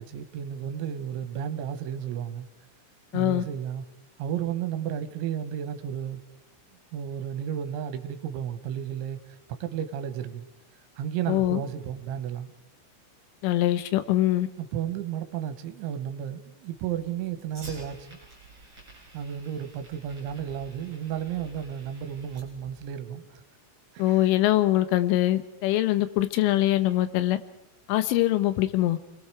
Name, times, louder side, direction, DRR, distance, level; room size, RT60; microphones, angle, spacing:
voice 1, 0.0-2.5 3.1-3.8 4.2-6.2 6.9-9.2 9.5-10.4 11.0-12.5 14.6-18.2 19.1-23.4 23.9-24.3, right 9 dB, 75° right, 3.2 m, -33 dB
voice 2, 3.1-3.4 11.3-11.6 13.4-14.5 24.0-27.4 27.9-29.0, left 14 dB, 80° left, 3.4 m, -23 dB
Fire, 16.8-22.8, right 3 dB, 20° right, 6.7 m, -49 dB
28.5 x 21.0 x 4.8 m
omnidirectional pair, 5.8 m